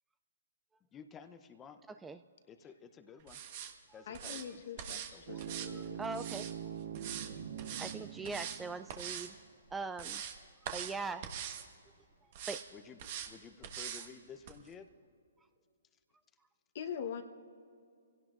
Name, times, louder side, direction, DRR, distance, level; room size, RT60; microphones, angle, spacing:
voice 1, 0.9-1.8 2.5-3.4 3.9-4.6 4.9-5.4 12.7-13.0 13.3-14.9, left 6 dB, 15° left, 0.7 m, -53 dB
sound 1, 3.3-3.7 4.1-4.4 4.8-5.1 5.4-6.5 6.9-7.3 7.6-7.9 8.2-8.6 8.9-9.3 9.7-10.4 10.6-10.9 11.2-11.6 12.3-12.6 13.0-13.3 13.6-14.1 14.5-14.6, right 9 dB, 45° right, 1.3 m, -42 dB
voice 2, 4.1-6.1 16.7-17.2, left 7 dB, 55° left, 1.1 m, -43 dB
sound 2, 5.3-9.2, right 9 dB, 75° right, 1.1 m, -44 dB
voice 3, 5.7-6.5 7.8-9.3 9.7-10.2 10.7-11.2 12.5-12.6, right 4 dB, 10° right, 0.3 m, -41 dB
24.5 x 17.0 x 2.5 m
hypercardioid pair, 145°, 0 cm